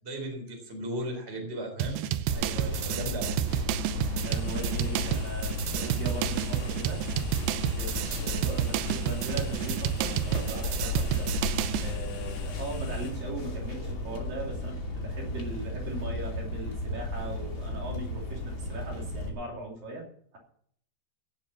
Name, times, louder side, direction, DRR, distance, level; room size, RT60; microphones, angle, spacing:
voice 1, 0.0-2.0 2.5-3.3, right 1 dB, 15° right, 2 dB, 3.6 m, -36 dB
sound 1, 1.8-11.9, right 12 dB, 80° right, 2.6 m, -31 dB
sound 2, 2.3-19.3, left 2 dB, 30° left, 2.7 m, -34 dB
voice 2, 2.3-3.0 3.9-7.0 7.5-11.3 11.8-20.0, right 2 dB, 55° right, -1 dB, 4.4 m, -39 dB
sound 3, 4.2-13.1, left 6 dB, 75° left, 4.0 m, -47 dB
16.5 x 7.3 x 7.0 m, 0.63 s
omnidirectional pair, 5.2 m